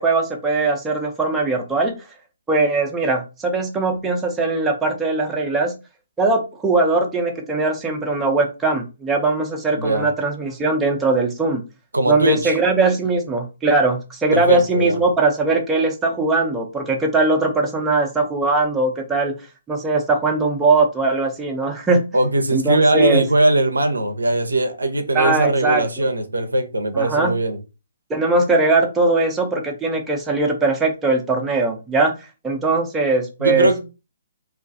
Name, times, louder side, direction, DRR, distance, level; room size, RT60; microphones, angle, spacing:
voice 1, 0.0-1.9 2.5-5.7 6.2-11.6 12.1-19.3 19.7-22.0 22.5-23.2 25.1-26.1 26.9-27.3 28.1-32.1 32.4-33.8, right 3 dB, 10° right, 0.5 m, -20 dB
voice 2, 9.8-10.1 11.9-12.5 14.3-15.0 22.1-27.6 33.4-33.8, right 2 dB, 80° right, 0.5 m, -20 dB
2.3 x 2.3 x 2.5 m
figure-of-eight pair, 130°, 0 cm